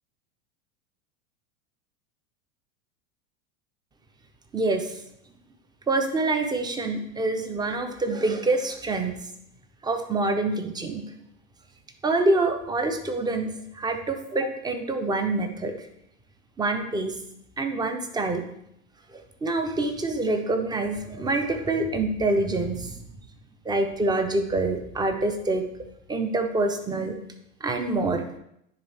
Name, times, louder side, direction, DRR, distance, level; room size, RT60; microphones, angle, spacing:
voice 1, 4.5-5.0 5.9-9.1 9.8-11.0 12.0-15.9 16.6-17.2 17.6-18.5 19.1-23.0 23.6-25.6 26.1-27.2 27.6-28.2, right 2 dB, 10° right, 6 dB, 0.6 m, -26 dB
10.5 x 3.6 x 3.4 m, 0.77 s
supercardioid pair, 120°, 42 cm